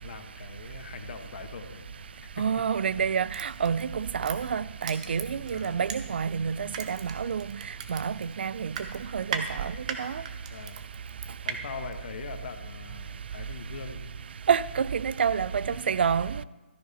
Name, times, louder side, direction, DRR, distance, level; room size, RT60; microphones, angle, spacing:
voice 1, 0.0-1.9 2.4-2.5 3.1-3.2 5.5-5.8 10.5-10.8 11.4-14.1, left 5 dB, 50° left, 1.2 m, -42 dB
sound 1, 1.6-9.9, left 6 dB, 20° left, 0.9 m, -56 dB
voice 2, 2.4-7.5 7.9-8.8 9.1-9.7 10.0-10.2 14.5-16.4, right 7 dB, 60° right, 0.4 m, -28 dB
Crushing, 3.3-6.3 6.7-11.6 11.9-12.0, right 7 dB, 35° right, 0.9 m, -37 dB
13.5 x 9.6 x 4.1 m
hypercardioid pair, 155°, 7 cm